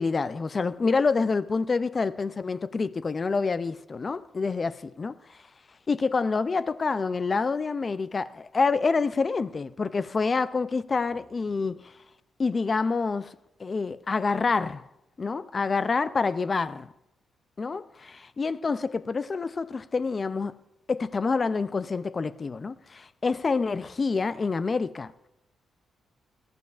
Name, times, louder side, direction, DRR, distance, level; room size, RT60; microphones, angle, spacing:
voice 1, 0.0-5.4 5.9-11.9 12.4-14.8 15.2-16.9 17.6-20.6 20.9-25.1, left 4 dB, 35° left, 0.3 m, -27 dB
20.5 x 14.5 x 2.4 m
cardioid pair, 115°, 0 cm